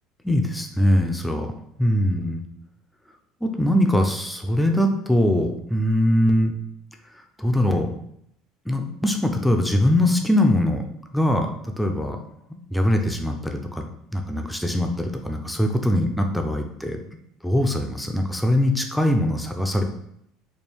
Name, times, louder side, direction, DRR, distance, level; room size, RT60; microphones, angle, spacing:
voice 1, 0.2-1.5 1.8-2.4 3.4-6.5 7.4-7.9 8.7-10.8 11.1-12.2 12.7-13.8 14.1-17.0 17.4-19.8, left 1 dB, 5° left, 4 dB, 0.5 m, -22 dB
4.3 x 2.3 x 3.5 m, 0.74 s
supercardioid pair, 115°, 0 cm